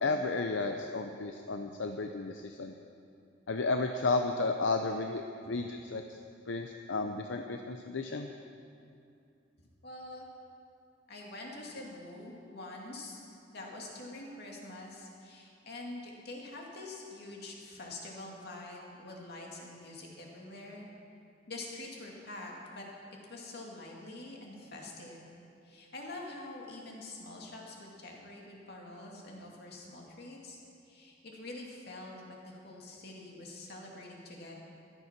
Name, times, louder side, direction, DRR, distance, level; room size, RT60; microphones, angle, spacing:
voice 1, 0.0-2.7 3.5-6.0 6.5-8.3, left 3 dB, 80° left, 5 dB, 0.7 m, -33 dB
voice 2, 9.6-10.3 11.1-13.2 13.5-20.9 21.5-22.8 23.3-25.3 25.6-30.6 30.9-34.6, left 2 dB, 60° left, -1 dB, 2.5 m, -46 dB
15.0 x 11.0 x 6.0 m, 2.5 s
head